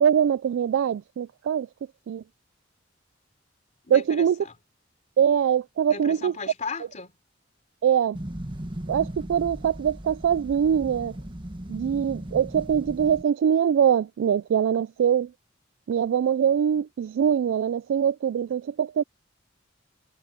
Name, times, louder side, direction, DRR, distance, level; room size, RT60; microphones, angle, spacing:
voice 1, 0.0-1.7 2.1-2.2 3.9-4.4 5.2-6.4 7.8-8.2 8.9-11.2 11.7-15.3 15.9-19.0, right 8 dB, 80° right, 0.3 m, -23 dB
voice 2, 3.8-4.5 5.9-7.1, left 4 dB, 40° left, 3.4 m, -36 dB
sound 1, 8.1-13.2, right 1 dB, 25° right, 1.5 m, -37 dB
head